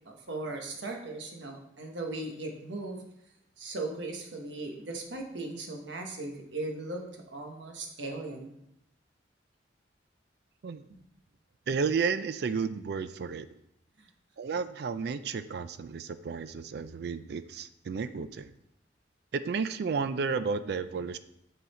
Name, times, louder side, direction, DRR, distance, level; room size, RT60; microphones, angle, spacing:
voice 1, 0.1-3.0 3.6-7.0 7.3-8.6 14.0-14.1, right 2 dB, 90° right, 2 dB, 1.2 m, -38 dB
voice 2, 11.7-13.5 14.4-18.5 19.3-21.2, right 5 dB, 60° right, 13 dB, 0.3 m, -32 dB
8.3 x 4.0 x 4.2 m, 0.78 s
head